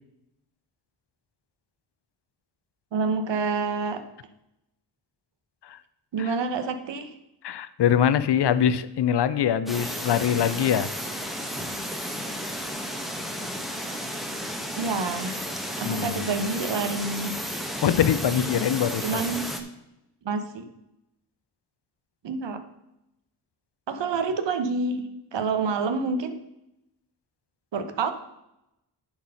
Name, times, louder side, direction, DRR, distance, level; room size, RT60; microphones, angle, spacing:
voice 1, 2.9-4.0 6.1-7.1 14.8-15.4 15.8-17.3 19.0-19.5 20.2-20.7 22.2-22.6 23.9-26.4 27.7-28.1, right 4 dB, 70° right, 9 dB, 1.1 m, -28 dB
voice 2, 7.4-10.9 15.8-16.4 17.8-19.2, left 9 dB, 65° left, 14 dB, 0.7 m, -23 dB
sound 1, 9.7-19.6, equal, ahead, 1.2 m, -33 dB
10.5 x 4.6 x 5.5 m, 0.86 s
cardioid pair, 85°, 45 cm